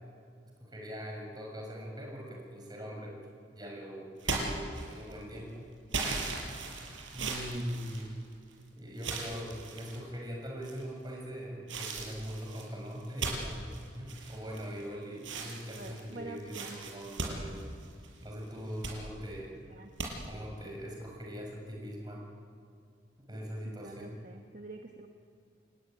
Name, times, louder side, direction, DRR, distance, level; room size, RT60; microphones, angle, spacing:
voice 1, 0.6-3.2 3.5-5.6 5.9-6.5 7.1-8.1 8.7-17.6 18.2-19.6 20.3-22.3 23.3-24.0, equal, 20° right, 0 dB, 6.4 m, -41 dB
sound 1, 4.2-5.2 5.9-8.5 9.0-10.0 10.6-11.1 11.7-14.9 15.2-18.2 18.6-19.0 20.0-20.1, right 3 dB, 85° right, 5.8 m, -38 dB
voice 2, 7.2-7.6 15.7-16.8 19.7-19.9 23.6-25.1, right 2 dB, 45° right, 3 dB, 1.4 m, -46 dB
28.5 x 20.5 x 9.1 m, 2.3 s
head